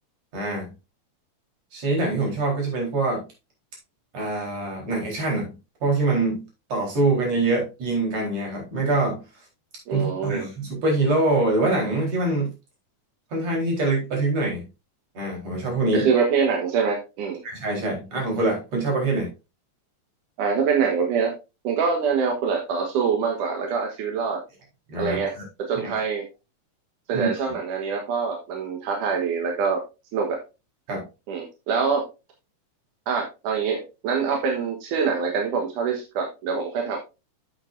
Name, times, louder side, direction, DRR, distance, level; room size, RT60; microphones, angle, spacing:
voice 1, 0.3-0.7 1.7-3.2 4.1-5.5 5.8-6.4 6.7-9.2 9.9-12.5 13.3-14.7 15.2-16.1 17.4-19.3 24.9-25.4 25.8-25.9 27.1-27.3 30.9-31.0, right 2 dB, 55° right, -1 dB, 5.2 m, -24 dB
voice 2, 9.9-10.4 15.9-17.4 20.4-21.3 21.6-24.4 25.0-25.3 25.7-26.2 27.1-29.8 30.1-30.4 31.3-32.1 33.1-37.0, right 6 dB, 90° right, 2 dB, 2.9 m, -24 dB
11.5 x 7.4 x 2.6 m, 0.27 s
omnidirectional pair, 3.5 m